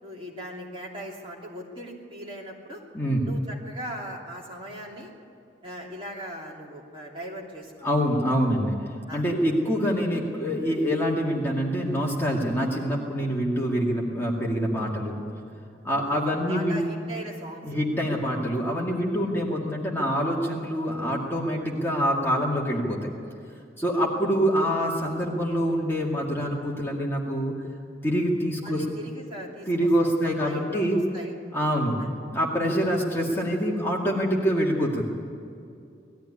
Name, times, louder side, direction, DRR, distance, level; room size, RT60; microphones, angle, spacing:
voice 1, 0.0-2.8 3.2-5.1 5.6-7.7 9.1-9.2 16.5-17.6 28.6-29.7 30.0-31.3 32.0-32.1, right 1 dB, 30° right, -3 dB, 3.1 m, -39 dB
voice 2, 7.8-15.2 15.8-16.8 17.6-23.1 23.8-27.5 28.0-28.8 29.7-31.0 31.5-32.0 32.3-35.0, equal, 15° left, -3 dB, 2.2 m, -25 dB
20.0 x 14.0 x 9.9 m, 2.5 s
head